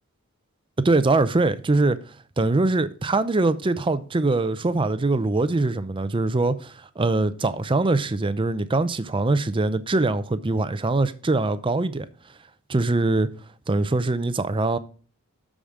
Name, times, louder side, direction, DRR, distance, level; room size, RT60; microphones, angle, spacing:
voice 1, 0.8-2.0 2.4-12.1 12.7-13.3 13.7-14.8, right 2 dB, 25° right, 0.5 m, -22 dB
12.5 x 5.0 x 3.7 m
head